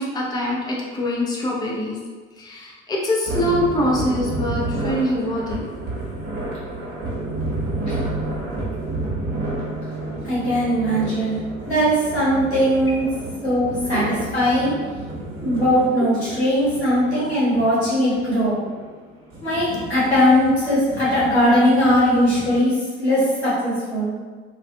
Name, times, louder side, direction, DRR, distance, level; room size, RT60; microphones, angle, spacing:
voice 1, 0.0-2.0 2.4-5.7 13.9-14.0, left 1 dB, 10° left, -3 dB, 0.5 m, -24 dB
sound 1, 3.3-22.6, right 2 dB, 55° right, 0.8 m, -31 dB
voice 2, 10.2-11.4 11.7-13.1 13.4-14.7 15.4-18.6 19.4-24.1, equal, 90° left, -10 dB, 0.9 m, -19 dB
2.5 x 2.2 x 2.5 m, 1.5 s
figure-of-eight pair, 55°, 32 cm